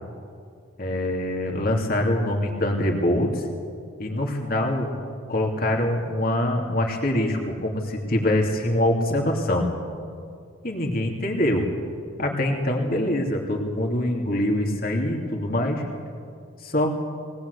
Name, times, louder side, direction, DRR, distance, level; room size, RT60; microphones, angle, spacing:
voice 1, 0.8-3.5 4.0-4.9 5.3-9.7 10.6-11.7 12.2-15.8 16.6-17.0, left 1 dB, 45° left, 1 dB, 2.9 m, -24 dB
21.0 x 19.0 x 8.3 m, 2.3 s
head